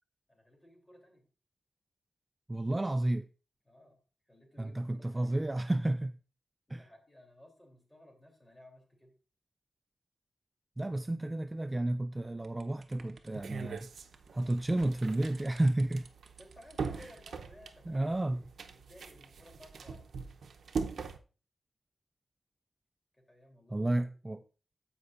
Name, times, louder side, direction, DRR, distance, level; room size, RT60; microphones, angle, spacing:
voice 1, 0.3-1.2 3.6-4.0 4.3-5.6 6.7-9.1 16.4-18.4 18.7-20.0 23.1-24.4, left 1 dB, 15° left, 3.1 m, -57 dB
voice 2, 2.5-3.3 4.6-6.1 6.7-6.9 10.8-13.9 14.3-16.1 17.0-17.1 17.9-18.4 23.7-24.4, right 1 dB, 20° right, 0.3 m, -31 dB
sound 1, 12.4-17.5, right 4 dB, 60° right, 0.9 m, -60 dB
sound 2, 13.3-21.2, right 5 dB, 90° right, 0.7 m, -41 dB
15.0 x 5.3 x 2.5 m
wide cardioid pair, 110°, 0 cm